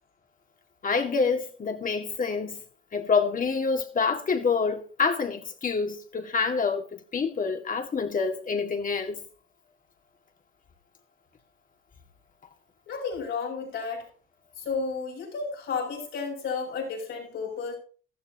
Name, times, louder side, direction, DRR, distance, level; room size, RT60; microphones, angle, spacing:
voice 1, 0.8-2.6 2.9-9.2, left 5 dB, 45° left, 2.1 m, -27 dB
voice 2, 12.9-14.1 14.6-17.8, left 5 dB, 80° left, 6.9 m, -32 dB
15.5 x 13.0 x 2.9 m
cardioid pair, 90°, 20 cm